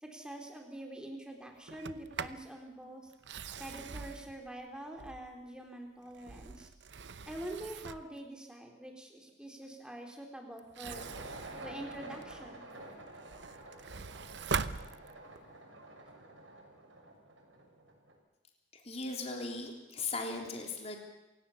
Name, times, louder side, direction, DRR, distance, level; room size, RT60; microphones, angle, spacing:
voice 1, 0.0-3.1 3.6-6.7 7.3-11.1 11.6-12.7, right 1 dB, 5° right, 2 dB, 3.6 m, -45 dB
Sliding door, 1.7-2.5 3.1-5.5 6.0-8.2 10.6-12.5 13.0-15.5, right 5 dB, 65° right, 0.8 m, -42 dB
sound 1, 10.8-18.1, right 2 dB, 85° right, 6.1 m, -49 dB
voice 2, 18.7-21.0, left 3 dB, 35° left, 2 dB, 3.5 m, -38 dB
28.0 x 17.0 x 7.1 m, 1.0 s
head